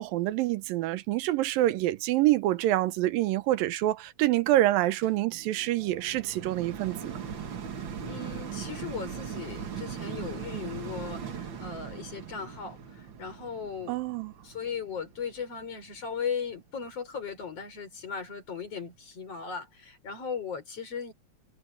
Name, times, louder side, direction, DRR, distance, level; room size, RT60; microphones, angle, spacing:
voice 1, 0.0-7.2 13.9-14.3, right 15 dB, 85° right, 2.6 m, -26 dB
sound 1, 5.0-16.3 16.9-17.0, right 7 dB, 45° right, 1.7 m, -40 dB
voice 2, 8.0-14.0 14.4-21.1, left 6 dB, 45° left, 6.0 m, -37 dB
omnidirectional pair, 4.0 m